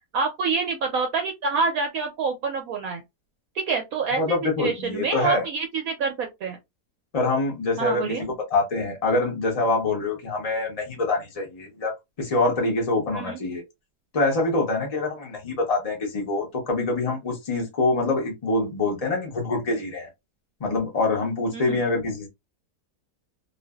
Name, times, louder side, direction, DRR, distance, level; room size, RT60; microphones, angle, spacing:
voice 1, 0.1-3.0 3.7-6.6 7.8-8.3 13.1-13.4 21.5-21.9, right 5 dB, 70° right, 0.8 m, -27 dB
voice 2, 4.2-5.4 7.1-11.9 12.2-13.6 14.1-20.1 20.6-22.3, left 3 dB, 65° left, 0.3 m, -25 dB
2.5 x 2.4 x 2.2 m
omnidirectional pair, 1.8 m